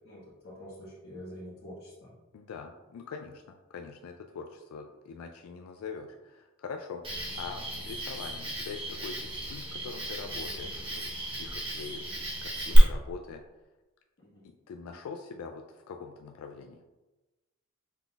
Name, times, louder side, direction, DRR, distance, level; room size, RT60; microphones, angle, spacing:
voice 1, 0.0-2.1 14.2-14.4, equal, 55° left, -11 dB, 1.3 m, -46 dB
voice 2, 2.3-13.4 14.4-16.8, left 5 dB, 85° left, 4 dB, 0.3 m, -43 dB
Cricket, 7.0-12.8, right 1 dB, 25° right, 1.0 m, -36 dB
5.6 x 3.9 x 2.3 m, 1.1 s
head